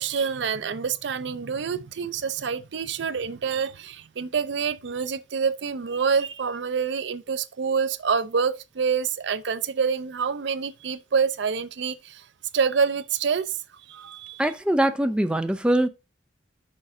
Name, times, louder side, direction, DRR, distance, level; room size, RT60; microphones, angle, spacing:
voice 1, 0.0-12.2 12.5-13.6 13.9-14.4, right 6 dB, 65° right, 0.5 m, -27 dB
voice 2, 14.4-15.9, right 1 dB, 5° right, 0.4 m, -22 dB
6.4 x 3.8 x 4.8 m
head